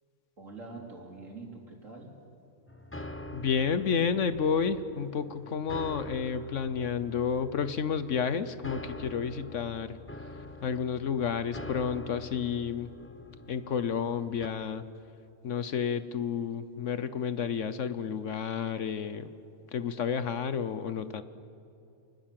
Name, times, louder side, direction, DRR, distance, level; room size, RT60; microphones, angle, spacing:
voice 1, 0.4-2.1, right 3 dB, 65° right, 1 dB, 3.8 m, -45 dB
sound 1, 2.7-14.5, left 1 dB, 10° left, 1.1 m, -45 dB
voice 2, 3.3-10.0 10.6-12.9 13.5-14.9 15.4-19.3 19.7-21.2, left 6 dB, 65° left, 12 dB, 1.2 m, -31 dB
28.5 x 20.5 x 7.6 m, 2.6 s
omnidirectional pair, 1.5 m